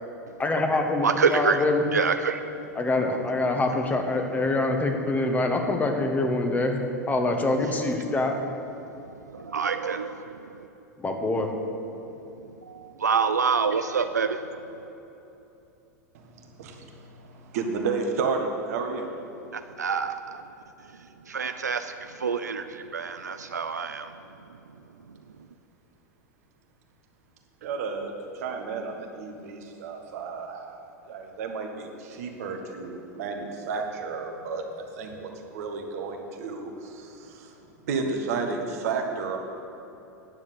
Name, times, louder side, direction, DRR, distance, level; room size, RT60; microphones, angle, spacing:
voice 1, 0.4-1.9 2.7-8.4 11.0-11.5, left 2 dB, 15° left, 3 dB, 1.5 m, -25 dB
voice 2, 1.0-1.6 1.9-2.4 9.0-10.6 13.0-14.4 19.5-20.4 21.3-24.1, right 5 dB, 80° right, 9 dB, 0.5 m, -27 dB
voice 3, 16.1-19.1 27.6-39.4, right 4 dB, 60° right, 3 dB, 1.5 m, -32 dB
9.7 x 7.2 x 8.2 m, 3.0 s
figure-of-eight pair, 90°, 9 cm